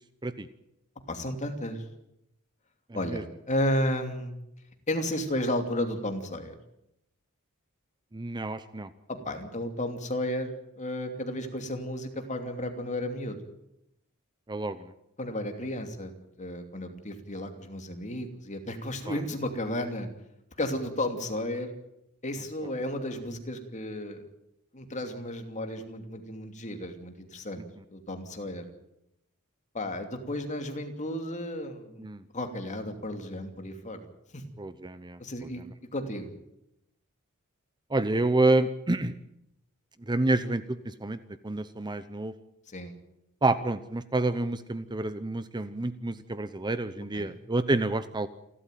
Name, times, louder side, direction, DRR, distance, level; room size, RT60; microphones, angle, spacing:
voice 1, 1.1-1.8 2.9-4.3 4.9-6.6 9.2-13.4 15.2-16.1 16.4-20.1 20.6-21.7 22.2-24.2 24.7-27.6 27.9-28.7 29.7-32.1 32.3-34.0 34.3-34.4 35.2-35.6 35.9-36.3 42.7-42.9 47.1-47.3, left 1 dB, 35° left, 6 dB, 2.9 m, -33 dB
voice 2, 2.9-3.2 8.1-8.9 14.5-14.9 19.1-19.2 32.0-32.2 34.6-35.2 37.9-39.1 40.1-42.3 43.4-48.3, right 2 dB, 20° right, 13 dB, 0.8 m, -28 dB
28.0 x 13.0 x 9.3 m, 0.84 s
head